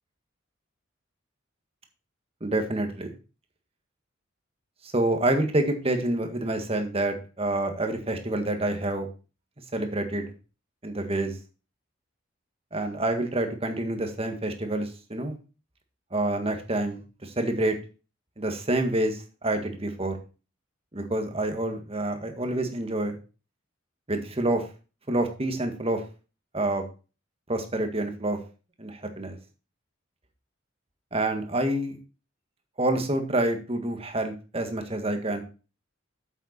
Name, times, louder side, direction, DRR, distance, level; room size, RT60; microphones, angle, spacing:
voice 1, 2.4-3.1 4.9-9.1 9.7-10.3 10.8-11.3 12.7-15.4 16.1-17.8 18.4-20.2 20.9-23.2 24.1-24.7 25.1-26.0 26.5-26.8 27.5-28.4 28.8-29.4 31.1-32.0 32.8-35.4, right 1 dB, 30° right, 5 dB, 1.7 m, -27 dB
8.0 x 8.0 x 4.4 m, 0.33 s
head